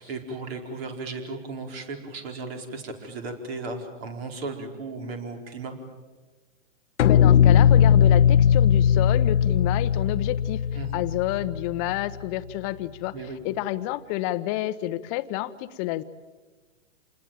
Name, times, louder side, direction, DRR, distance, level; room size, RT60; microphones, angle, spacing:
voice 1, 0.0-5.8 10.7-11.1 13.1-13.4, right 3 dB, 50° right, 5 dB, 4.7 m, -35 dB
sound 1, 7.0-12.2, left 8 dB, 65° left, 0.8 m, -19 dB
voice 2, 7.0-10.6 10.9-13.1 13.4-16.0, left 15 dB, 25° left, 13 dB, 0.9 m, -29 dB
27.5 x 20.0 x 9.0 m, 1.3 s
hypercardioid pair, 145°, 38 cm